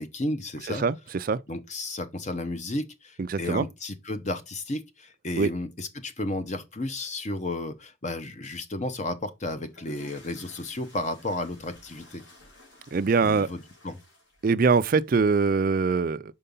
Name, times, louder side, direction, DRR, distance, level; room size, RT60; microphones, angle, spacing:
voice 1, 0.0-0.8 1.5-12.2 13.2-14.0, left 2 dB, 35° left, 0.8 m, -33 dB
voice 2, 0.7-1.4 3.2-3.7 5.4-5.5 12.9-13.5 14.4-16.3, right 4 dB, 45° right, 0.4 m, -23 dB
sound 1, 9.5-15.5, left 2 dB, 60° left, 2.5 m, -53 dB
5.5 x 4.6 x 5.2 m
head